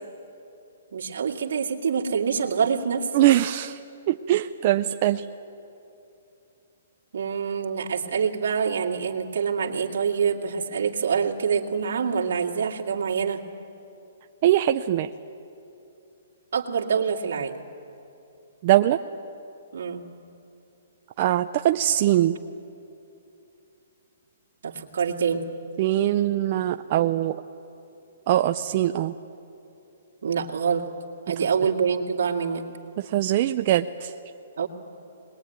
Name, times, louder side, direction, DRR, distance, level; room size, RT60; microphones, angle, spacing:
voice 1, 0.9-3.1 7.1-13.4 16.5-17.6 19.7-20.1 24.6-25.5 30.2-30.9 31.3-32.7 34.6-34.7, right 6 dB, 70° right, 1 dB, 2.4 m, -26 dB
voice 2, 3.1-3.8 4.1-5.2 14.4-15.1 18.6-19.0 21.2-22.4 25.8-27.4 28.3-29.1 33.0-34.1, right 13 dB, 35° right, 7 dB, 0.5 m, -22 dB
22.0 x 21.0 x 9.4 m, 2.7 s
hypercardioid pair, 160°, 0 cm